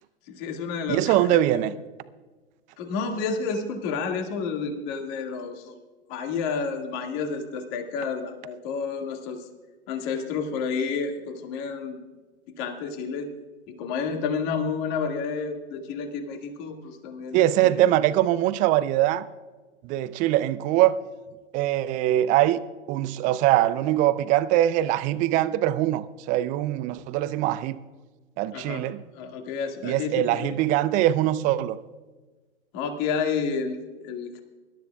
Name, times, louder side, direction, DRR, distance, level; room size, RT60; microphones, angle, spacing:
voice 1, 0.3-1.7 2.8-5.7 6.1-9.5 9.9-12.0 12.6-13.3 13.7-17.9 28.5-28.8 29.1-30.6 32.7-34.4, left 5 dB, 40° left, 2.0 m, -30 dB
voice 2, 0.9-1.7 17.3-19.3 19.8-21.0 21.5-22.6 22.9-27.8 28.4-29.0 29.8-31.8, right 13 dB, 20° right, 0.4 m, -22 dB
24.5 x 12.5 x 2.3 m
hypercardioid pair, 110°, 36 cm